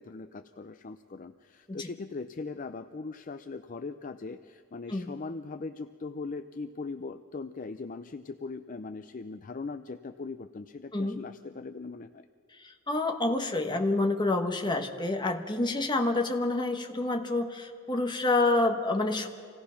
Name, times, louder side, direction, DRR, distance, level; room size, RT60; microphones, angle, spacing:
voice 1, 0.0-12.3, left 3 dB, 40° left, 9 dB, 0.5 m, -40 dB
voice 2, 12.6-19.3, left 2 dB, 20° left, 4 dB, 1.2 m, -28 dB
26.0 x 17.5 x 5.8 m, 2.2 s
head